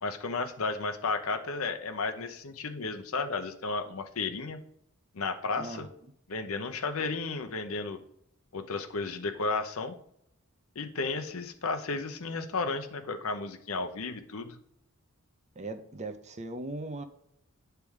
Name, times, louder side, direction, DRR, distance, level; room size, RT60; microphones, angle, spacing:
voice 1, 0.0-4.6 5.1-5.9 6.3-8.0 8.5-10.0 10.8-14.6, left 3 dB, 70° left, 8 dB, 0.8 m, -33 dB
voice 2, 5.6-5.9 15.6-17.1, right 2 dB, 30° right, 9 dB, 0.6 m, -38 dB
8.8 x 3.4 x 4.6 m, 0.73 s
head